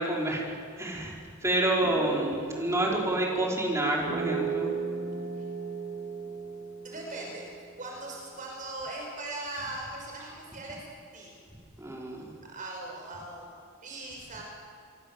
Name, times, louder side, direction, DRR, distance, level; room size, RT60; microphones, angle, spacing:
voice 1, 0.0-4.8 11.8-12.3, right 1 dB, 15° right, -2 dB, 5.3 m, -29 dB
sound 1, 1.8-7.9, right 5 dB, 60° right, 7.7 m, -36 dB
voice 2, 6.8-7.4 7.8-10.8 11.1-11.3 12.5-13.5 13.8-14.4, right 2 dB, 40° right, -1 dB, 5.8 m, -39 dB
27.0 x 24.0 x 7.8 m, 2.3 s
head